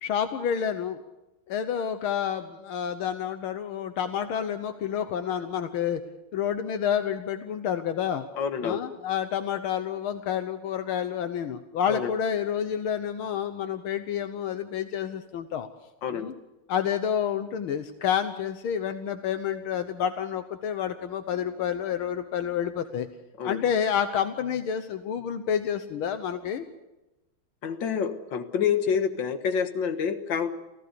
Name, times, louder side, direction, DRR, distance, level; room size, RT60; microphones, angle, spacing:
voice 1, 0.0-1.0 1.5-6.0 6.3-8.2 8.6-15.7 16.1-16.4 16.7-23.1 23.4-26.7, left 8 dB, 80° left, 9 dB, 1.9 m, -29 dB
voice 2, 8.4-8.8 11.9-12.1 16.0-16.3 23.4-23.6 27.6-30.5, left 7 dB, 65° left, 8 dB, 2.2 m, -27 dB
28.0 x 16.5 x 6.9 m, 0.98 s
omnidirectional pair, 2.3 m